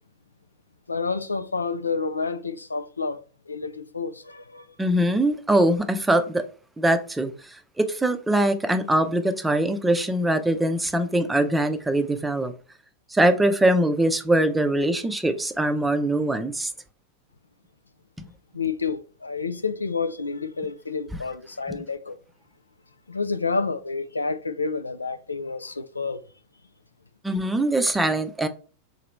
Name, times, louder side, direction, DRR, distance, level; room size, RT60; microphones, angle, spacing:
voice 1, 0.9-4.7 18.5-22.2 23.1-26.2, left 4 dB, 80° left, 0.4 m, -29 dB
voice 2, 4.8-6.4 6.8-12.5 13.1-16.7 18.2-18.3 21.1-21.2 21.7-21.8 27.2-28.5, right 1 dB, 10° right, 0.6 m, -22 dB
3.9 x 2.9 x 4.5 m
figure-of-eight pair, 90°, 0 cm